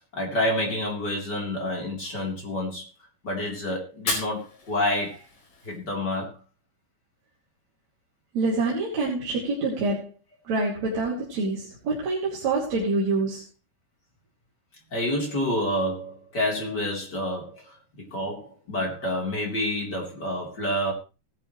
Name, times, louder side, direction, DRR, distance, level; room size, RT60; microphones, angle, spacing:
voice 1, 0.1-2.8 3.2-5.2 5.6-6.4 14.9-20.9, left 1 dB, 25° left, 0 dB, 3.8 m, -28 dB
Fire, 3.9-5.9, left 2 dB, 50° left, 6.3 m, -34 dB
voice 2, 8.3-10.1 10.5-13.4, right 3 dB, 45° right, -5 dB, 3.5 m, -26 dB
18.5 x 11.0 x 3.2 m, 0.31 s
omnidirectional pair, 5.3 m